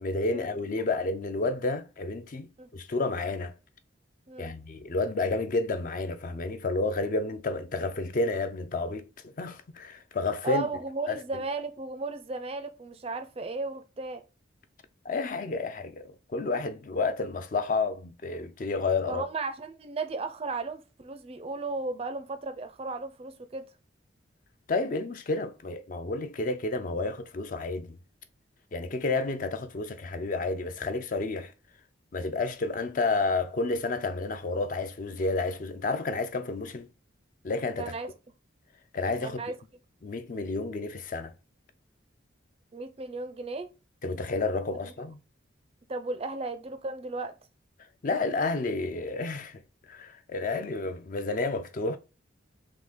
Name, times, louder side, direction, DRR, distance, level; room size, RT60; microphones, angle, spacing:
voice 1, 0.0-3.5 4.4-9.1 9.4-10.7 11.1-11.4 15.0-19.2 24.7-28.0 28.7-31.5 32.1-36.9 37.4-37.9 38.9-39.4 40.0-41.3 44.0-45.2 48.0-49.6 49.9-52.0, left 3 dB, 45° left, 0.4 m, -30 dB
voice 2, 10.4-14.2 19.1-23.7 37.8-38.1 39.2-39.6 42.7-43.7 45.9-47.3, right 3 dB, 30° right, 0.4 m, -35 dB
3.7 x 2.7 x 4.0 m
head